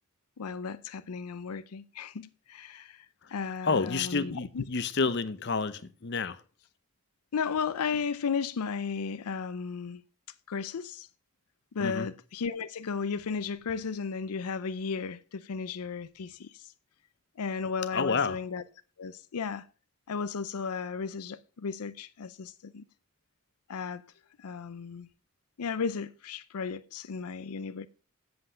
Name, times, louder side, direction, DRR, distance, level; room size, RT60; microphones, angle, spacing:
voice 1, 0.4-4.6 7.3-10.0 10.5-11.1 11.7-16.7 17.4-18.6 19.0-19.7 20.1-22.9 23.7-24.0 24.4-25.1 25.6-27.9, left 5 dB, 90° left, 0.5 m, -34 dB
voice 2, 3.6-6.4 11.8-12.1 17.9-18.4, left 4 dB, 50° left, 0.7 m, -29 dB
7.9 x 7.9 x 5.0 m
head